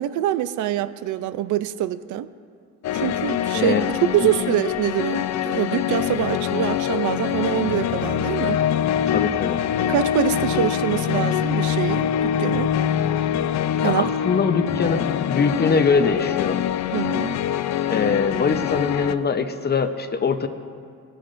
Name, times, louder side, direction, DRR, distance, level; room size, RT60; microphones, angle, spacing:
voice 1, 0.0-2.3 2.9-8.6 9.8-12.7 13.8-14.0 16.9-17.4, right 12 dB, 80° right, 14 dB, 0.5 m, -25 dB
sound 1, 2.8-19.2, left 10 dB, 65° left, 0.5 m, -24 dB
voice 2, 9.1-9.9 13.8-16.6 17.9-20.5, left 5 dB, 35° left, 9 dB, 0.7 m, -22 dB
19.0 x 9.8 x 2.6 m, 2.2 s
cardioid pair, 90°, 30 cm